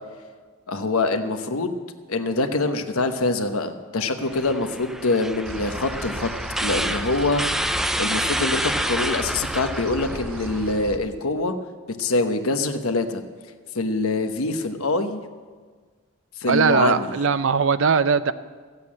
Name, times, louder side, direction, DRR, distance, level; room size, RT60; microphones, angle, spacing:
voice 1, 0.7-1.8 2.1-6.3 6.6-11.5 12.0-13.2 13.7-15.2 16.4-17.1, left 3 dB, 80° left, 7 dB, 1.1 m, -24 dB
sound 1, 4.3-10.8, equal, ahead, 0.3 m, -28 dB
sound 2, 5.5-11.0, right 2 dB, 85° right, 1.0 m, -36 dB
voice 2, 16.5-18.3, right 5 dB, 65° right, 14 dB, 0.5 m, -20 dB
15.0 x 8.2 x 8.5 m, 1.5 s
head